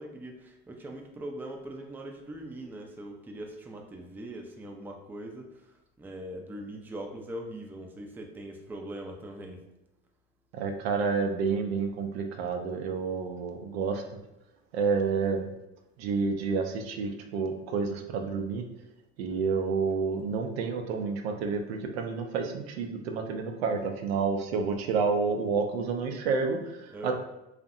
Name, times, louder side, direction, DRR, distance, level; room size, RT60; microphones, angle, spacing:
voice 1, 0.0-9.6 26.9-27.1, right 1 dB, 5° right, 2 dB, 0.3 m, -41 dB
voice 2, 10.5-14.0 14.7-15.5 16.0-18.7 19.2-26.8 27.0-27.1, right 5 dB, 85° right, 4 dB, 0.5 m, -29 dB
2.6 x 2.1 x 2.5 m, 0.90 s
hypercardioid pair, 80°, 30 cm